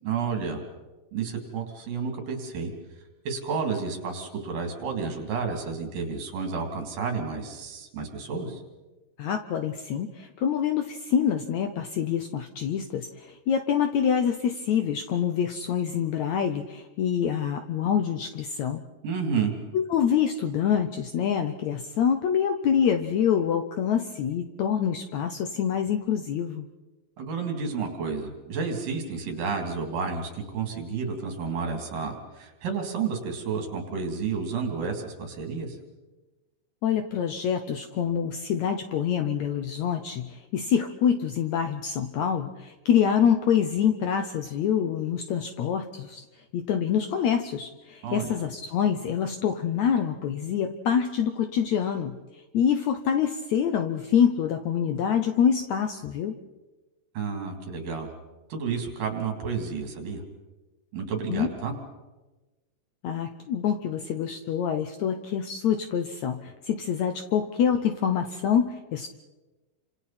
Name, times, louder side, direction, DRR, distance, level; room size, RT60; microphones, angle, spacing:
voice 1, 0.0-0.6 1.1-2.7 3.2-8.6 19.0-19.5 27.2-35.8 48.0-48.3 57.1-58.1 58.5-60.2 60.9-61.7, right 5 dB, 70° right, 3 dB, 4.7 m, -31 dB
voice 2, 9.2-18.8 19.7-26.7 36.8-46.2 46.5-52.2 52.5-56.4 61.3-61.5 63.0-69.1, left 8 dB, 70° left, 7 dB, 1.8 m, -26 dB
29.5 x 26.5 x 4.4 m, 1.2 s
omnidirectional pair, 4.1 m